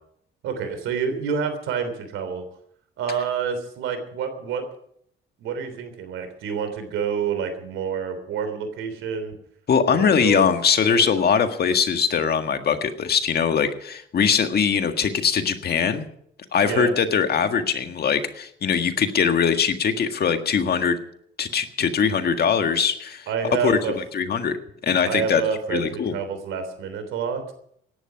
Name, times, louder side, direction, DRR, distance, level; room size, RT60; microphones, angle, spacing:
voice 1, 0.4-2.5 3.0-4.6 5.4-9.3 9.9-10.5 11.0-11.1 16.6-16.9 23.3-23.9 25.0-27.4, right 6 dB, 90° right, 9 dB, 3.3 m, -28 dB
voice 2, 9.7-16.1 16.5-21.0 21.4-23.3 23.6-24.6 24.8-25.4 25.7-26.1, left 6 dB, 55° left, 7 dB, 1.8 m, -21 dB
17.0 x 11.5 x 5.9 m, 0.69 s
cardioid pair, 90°, 20 cm